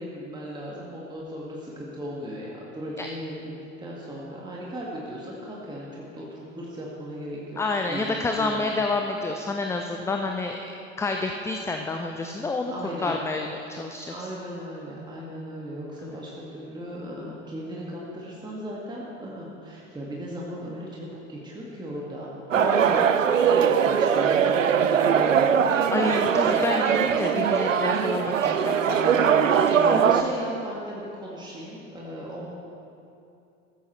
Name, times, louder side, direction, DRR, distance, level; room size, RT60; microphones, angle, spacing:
voice 1, 0.0-7.6 7.9-8.7 12.7-13.2 14.1-23.0 23.3-25.9 29.5-32.5, equal, 10° right, -5 dB, 1.9 m, -37 dB
voice 2, 7.6-10.6 11.0-12.7 13.0-14.1 16.0-16.1 22.5-23.1 25.9-30.0, left 3 dB, 5° left, 4 dB, 0.5 m, -29 dB
sound 1, 22.5-30.2, right 7 dB, 80° right, 0.6 m, -21 dB
15.5 x 13.5 x 3.2 m, 2.7 s
figure-of-eight pair, 75°, 38 cm